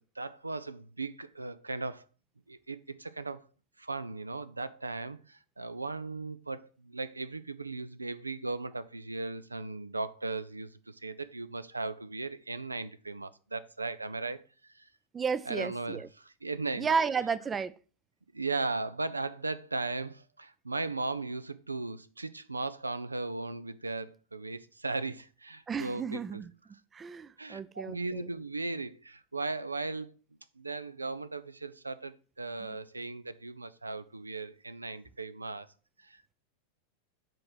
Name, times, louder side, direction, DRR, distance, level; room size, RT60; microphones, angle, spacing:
voice 1, 0.2-2.0 2.5-3.4 3.8-14.4 14.7-14.9 15.5-16.9 18.3-26.4 27.4-30.1 30.6-35.7 36.0-36.3, right 3 dB, 80° right, 0.4 m, -37 dB
voice 2, 15.1-16.1 16.8-17.7 25.7-26.5 26.9-28.3 32.6-32.7, right 6 dB, 20° right, 0.4 m, -32 dB
7.6 x 4.6 x 5.9 m
figure-of-eight pair, 90°, 0 cm